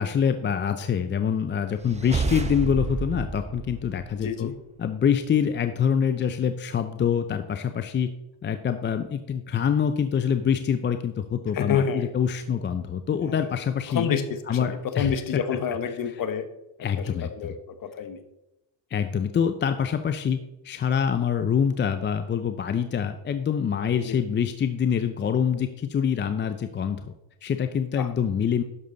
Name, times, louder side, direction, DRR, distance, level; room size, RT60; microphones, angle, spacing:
voice 1, 0.0-4.5 4.8-8.1 8.4-14.1 14.5-15.1 16.8-17.5 18.9-20.4 20.6-27.1 27.4-28.6, left 7 dB, 25° left, 9 dB, 0.5 m, -25 dB
sound 1, 1.8-4.6, right 4 dB, 15° right, 0.9 m, -31 dB
voice 2, 4.2-4.6 11.5-12.1 13.2-13.5 13.9-16.5 17.0-18.2 24.0-24.2 28.0-28.1, left 7 dB, 45° left, 10 dB, 1.2 m, -28 dB
11.0 x 6.7 x 3.9 m, 0.91 s
cardioid pair, 100°, 48 cm